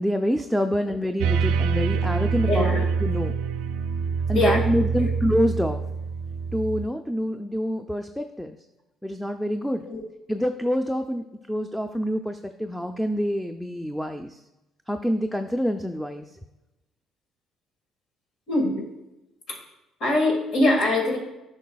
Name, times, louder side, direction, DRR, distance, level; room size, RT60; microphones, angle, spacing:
voice 1, 0.0-3.3 4.3-5.8 6.5-8.6 9.0-9.8 10.3-14.4 14.9-16.2, equal, 5° left, 6 dB, 0.4 m, -26 dB
sound 1, 1.2-6.9, right 5 dB, 85° right, 0.4 m, -25 dB
voice 2, 2.5-2.9 4.3-4.6 5.0-5.1 9.8-10.0 18.5-18.7 19.5-19.6 20.0-21.2, left 1 dB, 70° left, 1 dB, 1.8 m, -23 dB
10.0 x 5.3 x 2.3 m, 0.97 s
supercardioid pair, 70°, 0 cm